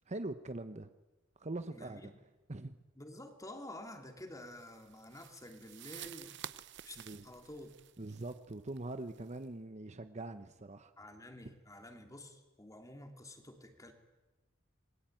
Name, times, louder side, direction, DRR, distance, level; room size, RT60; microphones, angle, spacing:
voice 1, 0.1-0.9 1.4-2.0 2.5-2.8 7.0-7.2 8.0-10.9, right 2 dB, 35° right, 10 dB, 0.9 m, -42 dB
voice 2, 1.7-2.1 3.0-6.4 6.8-7.7 11.0-13.9, left 1 dB, 15° left, 5 dB, 2.9 m, -50 dB
sound 1, 4.5-9.4, right 10 dB, 60° right, 0.8 m, -51 dB
27.0 x 21.0 x 9.1 m, 1.2 s
head